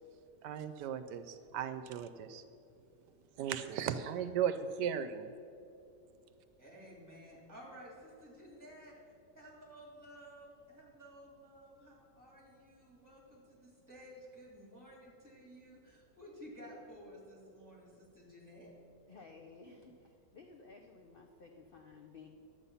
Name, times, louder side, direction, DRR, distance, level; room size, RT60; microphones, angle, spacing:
voice 1, 0.4-2.4 3.4-5.3, right 8 dB, 80° right, 10 dB, 1.2 m, -36 dB
voice 2, 6.6-8.9 9.3-18.7, equal, 10° right, -4 dB, 3.1 m, -54 dB
voice 3, 19.1-22.3, left 4 dB, 50° left, 2 dB, 0.6 m, -55 dB
11.0 x 8.2 x 5.6 m, 2.7 s
omnidirectional pair, 1.8 m